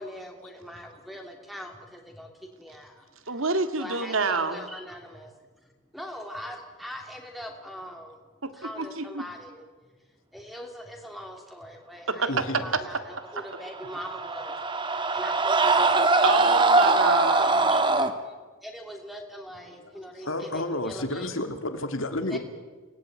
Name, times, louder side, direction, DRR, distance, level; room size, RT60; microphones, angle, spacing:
voice 1, 0.0-3.4 3.8-5.3 5.9-8.2 8.5-9.6 10.3-14.6 15.1-16.3 17.4-21.3 22.3-22.4, equal, ahead, 3 dB, 2.9 m, -42 dB
voice 2, 3.3-4.6 8.4-8.5 9.0-9.2 12.2-12.3 16.2-17.5, right 4 dB, 65° right, 9 dB, 2.0 m, -27 dB
voice 3, 12.3-12.8 19.8-19.9 20.2-22.4, left 1 dB, 65° left, 7 dB, 2.7 m, -31 dB
Screaming, 13.6-18.1, right 3 dB, 20° right, 1.5 m, -22 dB
28.5 x 19.0 x 9.4 m, 1.4 s
head